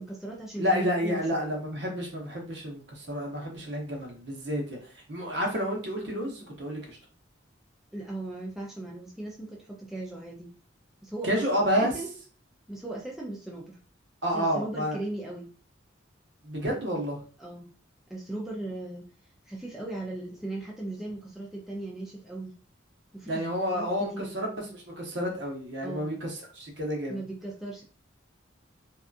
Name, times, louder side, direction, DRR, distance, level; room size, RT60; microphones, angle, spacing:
voice 1, 0.0-1.5 7.9-10.5 11.0-11.3 11.7-12.1 12.7-13.8 14.3-15.5 17.4-17.7 18.1-19.1 19.5-22.6 23.1-23.5 23.7-24.4 25.8-26.1 27.1-27.8, right 2 dB, ahead, -3 dB, 0.4 m, -38 dB
voice 2, 0.6-4.8 5.1-7.0 11.2-11.9 14.2-15.0 16.4-17.2 23.2-27.2, equal, 65° right, 0 dB, 0.8 m, -30 dB
2.7 x 2.3 x 2.4 m, 0.39 s
head